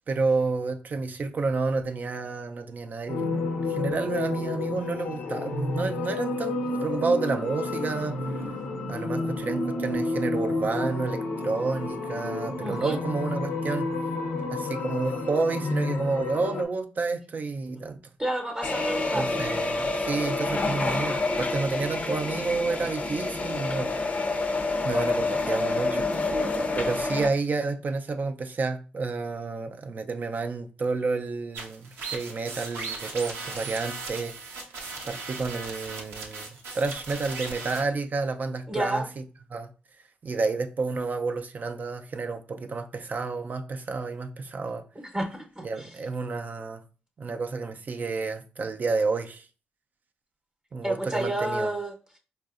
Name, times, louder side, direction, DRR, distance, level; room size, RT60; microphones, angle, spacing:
voice 1, 0.1-8.4 8.9-13.9 14.5-18.0 19.1-23.9 24.8-26.0 26.3-26.4 26.7-34.3 35.1-39.0 39.5-39.7 40.2-44.8 45.6-46.8 47.2-49.5 50.7-51.7, right 4 dB, 45° right, 0.4 m, -30 dB
sound 1, 3.1-16.6, left 3 dB, 85° left, 0.6 m, -30 dB
voice 2, 12.6-13.0 18.2-19.4 38.7-39.1 45.1-45.9 50.8-52.2, right 1 dB, 20° right, 0.8 m, -30 dB
sound 2, 18.6-27.3, left 2 dB, 35° left, 0.5 m, -28 dB
sound 3, 31.5-37.8, right 4 dB, 85° right, 0.7 m, -37 dB
4.2 x 2.5 x 2.4 m
supercardioid pair, 60°, 4 cm